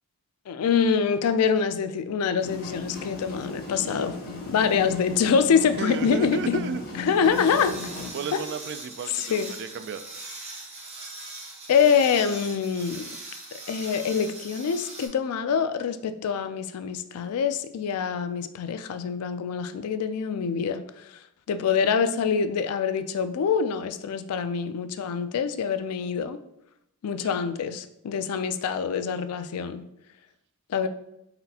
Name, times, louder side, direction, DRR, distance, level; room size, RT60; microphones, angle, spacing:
voice 1, 0.5-4.2 4.5-6.6 7.0-7.7 8.3-8.4 9.1-9.5 11.7-13.2 13.7-21.1 21.5-26.4 27.0-29.8 30.7-30.9, left 6 dB, 85° left, 11 dB, 0.4 m, -25 dB
sound 1, 2.4-8.1, left 3 dB, 45° left, 0.9 m, -36 dB
voice 2, 5.8-7.2 8.1-10.0 27.2-27.4, right 6 dB, 50° right, 11 dB, 0.3 m, -34 dB
sound 2, 6.7-15.1, right 2 dB, 30° right, 0.8 m, -41 dB
4.1 x 4.1 x 2.8 m, 0.81 s
head